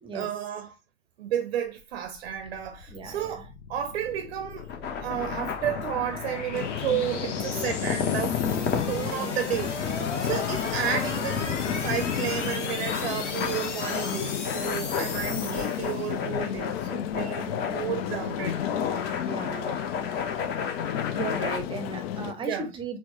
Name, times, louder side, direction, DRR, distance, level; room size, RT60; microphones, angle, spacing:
voice 1, 0.1-0.8 1.2-4.7 5.0-8.4 8.9-18.6 22.4-22.8, right 10 dB, 60° right, 0.6 m, -32 dB
sound 1, 1.8-16.4, left 4 dB, 80° left, 0.8 m, -37 dB
voice 2, 2.9-3.5 9.0-9.4 14.2-14.3 15.3-15.7 19.2-19.8 21.1-23.0, right 2 dB, 15° right, 0.7 m, -36 dB
sound 2, 4.6-21.6, left 6 dB, 30° left, 0.8 m, -33 dB
sound 3, 6.5-22.3, left 11 dB, 55° left, 0.4 m, -33 dB
4.3 x 2.1 x 3.1 m
figure-of-eight pair, 85°, 36 cm